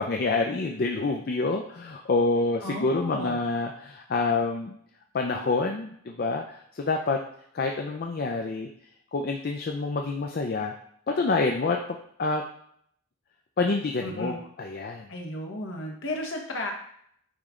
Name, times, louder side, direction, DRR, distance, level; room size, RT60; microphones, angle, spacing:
voice 1, 0.0-4.8 5.1-7.2 7.5-8.7 9.1-10.7 11.1-11.8 12.2-12.4 13.6-15.1, left 3 dB, 45° left, 3 dB, 0.4 m, -27 dB
voice 2, 2.6-3.4 14.0-14.4 15.1-16.7, left 1 dB, 60° left, 1 dB, 1.2 m, -33 dB
8.7 x 3.2 x 3.7 m, 0.67 s
head